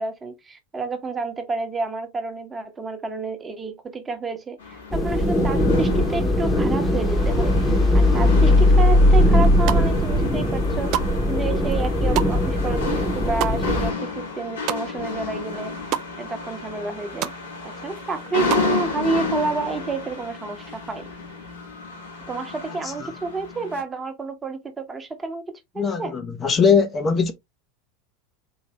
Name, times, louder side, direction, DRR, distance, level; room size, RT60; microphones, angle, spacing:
voice 1, 0.0-11.0 11.3-15.7 16.2-17.3 17.6-21.1 22.3-25.4 25.7-26.1, right 3 dB, 20° right, 1.0 m, -29 dB
sound 1, 4.6-23.8, left 4 dB, 75° left, 2.2 m, -32 dB
sound 2, 4.9-13.9, left 1 dB, 10° left, 1.1 m, -19 dB
sound 3, 9.4-10.1 10.5-15.2 15.5-16.1 16.5-16.6 16.8-17.4 17.8-18.7, right 12 dB, 50° right, 0.4 m, -30 dB
voice 2, 25.8-27.3, left 5 dB, 30° left, 0.7 m, -21 dB
4.0 x 3.1 x 3.0 m
figure-of-eight pair, 80°, 0 cm